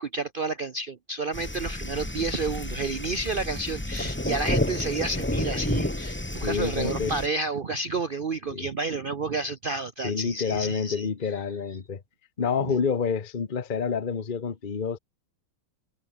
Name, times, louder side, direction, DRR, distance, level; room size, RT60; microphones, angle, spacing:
voice 1, 0.0-11.1, right 3 dB, 70° right, 0.5 m, -30 dB
sound 1, 1.3-7.3, left 1 dB, 5° left, 1.0 m, -30 dB
voice 2, 6.4-7.1 8.5-8.7 10.0-12.0 12.4-15.0, left 6 dB, 30° left, 1.1 m, -28 dB
omnidirectional pair, 2.3 m